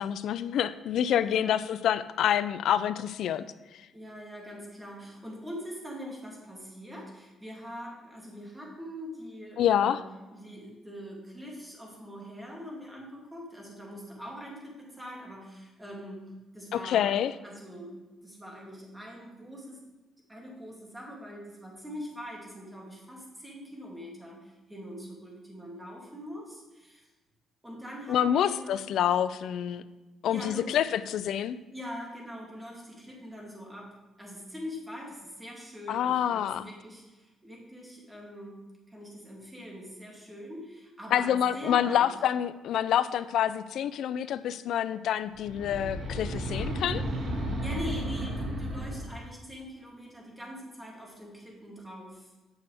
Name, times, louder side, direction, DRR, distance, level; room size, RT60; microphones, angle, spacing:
voice 1, 0.0-3.4 9.6-10.0 16.7-17.3 28.1-29.8 30.2-31.6 35.9-36.7 41.1-47.1, left 10 dB, 75° left, 14 dB, 0.4 m, -27 dB
voice 2, 1.2-1.6 3.9-10.0 10.3-17.2 17.4-18.0 18.2-19.8 20.3-27.1 27.6-28.8 30.3-30.8 31.7-38.6 38.9-42.1 47.6-52.3, equal, 10° right, -2 dB, 2.7 m, -43 dB
sound 1, 45.3-49.3, right 1 dB, 60° right, 1.8 m, -33 dB
9.1 x 6.8 x 3.5 m, 1.1 s
cardioid pair, 90°, 0 cm